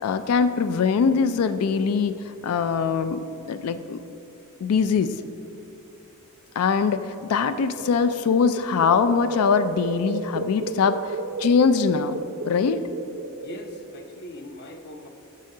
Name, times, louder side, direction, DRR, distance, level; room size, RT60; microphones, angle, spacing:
voice 1, 0.0-2.1 2.4-3.2 3.5-4.0 4.6-5.1 6.6-12.2 12.4-12.8, left 5 dB, 90° left, 11 dB, 0.3 m, -22 dB
sound 1, 7.5-14.0, right 3 dB, 60° right, 0.5 m, -33 dB
voice 2, 13.4-15.1, left 1 dB, 50° left, 6 dB, 0.7 m, -40 dB
9.7 x 6.3 x 3.7 m, 2.8 s
head